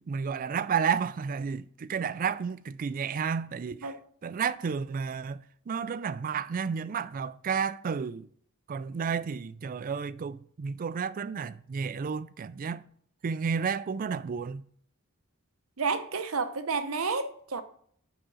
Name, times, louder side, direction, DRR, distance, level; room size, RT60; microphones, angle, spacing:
voice 1, 0.1-3.9 4.2-8.3 8.7-12.8 13.2-14.6, right 6 dB, 40° right, 0.3 m, -31 dB
voice 2, 15.8-17.6, right 4 dB, 85° right, 0.8 m, -30 dB
8.8 x 5.0 x 6.2 m
head